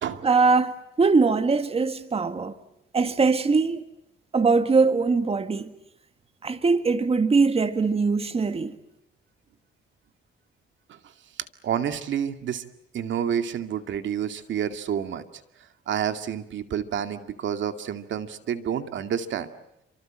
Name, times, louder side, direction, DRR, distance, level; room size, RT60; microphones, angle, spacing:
voice 1, 0.2-2.5 2.9-3.8 4.3-5.7 6.4-8.8, right 4 dB, 30° right, 1.9 m, -22 dB
voice 2, 11.6-12.6 12.9-15.2 15.9-19.5, right 9 dB, 70° right, 2.3 m, -29 dB
29.5 x 25.5 x 7.7 m
cardioid pair, 90°, 20 cm